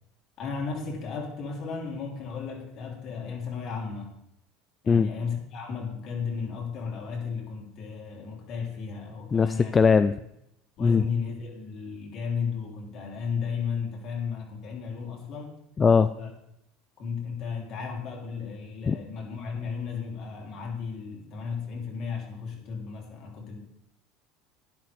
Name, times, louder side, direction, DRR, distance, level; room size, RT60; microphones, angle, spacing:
voice 1, 0.4-4.2 4.8-9.8 10.8-15.5 16.2-16.3 17.0-23.6, left 5 dB, 55° left, 0 dB, 3.0 m, -34 dB
voice 2, 9.3-10.1 10.8-11.0 15.8-16.1 18.9-19.0, left 5 dB, 25° left, 12 dB, 0.3 m, -20 dB
11.5 x 10.0 x 3.4 m, 0.80 s
supercardioid pair, 120°, 0 cm